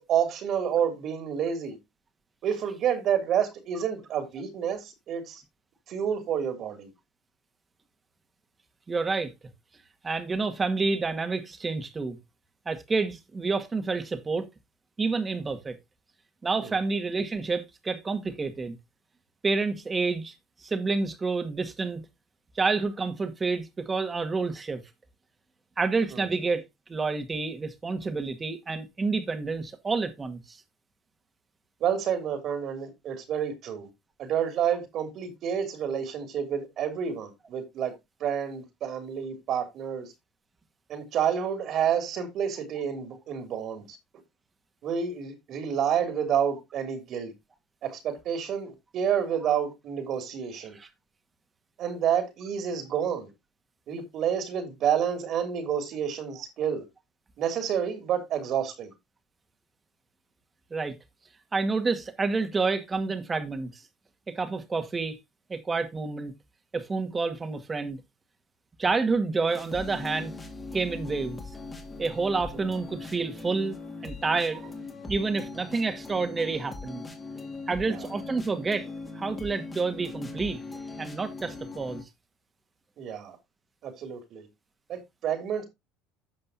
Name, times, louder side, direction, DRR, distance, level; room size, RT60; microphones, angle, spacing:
voice 1, 0.0-1.8 2.4-5.4 5.9-6.9 16.6-16.7 26.1-26.2 31.8-33.9 34.2-37.9 38.2-40.1 40.9-43.8 44.8-47.3 47.8-50.8 51.8-53.3 53.9-56.8 57.4-58.9 72.5-72.6 77.8-78.0 83.0-83.4 83.8-84.5 84.9-85.6, right 8 dB, 55° right, 3.0 m, -29 dB
voice 2, 8.9-9.3 10.0-12.2 12.7-14.5 15.0-15.8 16.4-18.8 19.4-20.3 20.6-22.0 22.6-24.8 25.8-26.6 26.9-30.6 50.8-50.9 60.7-60.9 61.5-63.7 64.3-65.2 65.5-66.3 66.7-68.0 68.8-70.3 70.7-71.4 72.0-73.8 74.0-74.6 75.1-77.0 77.7-78.9 79.2-80.6 81.0-82.0, right 4 dB, 25° right, 2.0 m, -29 dB
sound 1, 69.5-82.0, left 3 dB, 20° left, 2.5 m, -40 dB
15.5 x 5.3 x 2.8 m
hypercardioid pair, 80°, 0 cm